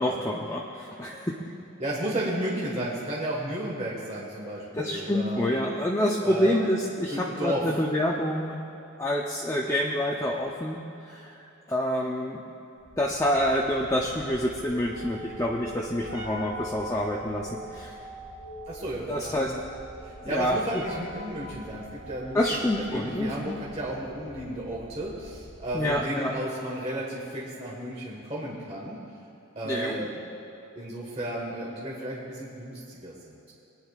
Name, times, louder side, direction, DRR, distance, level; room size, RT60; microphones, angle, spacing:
voice 1, 0.0-1.4 4.8-8.6 9.0-10.8 11.1-12.4 13.0-18.0 19.1-19.5 20.3-20.8 22.3-23.6 25.7-26.3 29.6-30.1, left 1 dB, 15° left, -2 dB, 0.6 m, -27 dB
voice 2, 1.8-5.4 6.2-6.6 7.1-7.6 18.7-19.6 20.0-29.0 29.5-30.2 30.7-33.5, right 1 dB, 30° right, -5 dB, 1.5 m, -33 dB
sound 1, 12.8-26.2, equal, 70° right, 2.0 m, -43 dB
23.5 x 9.8 x 2.4 m, 2.9 s
head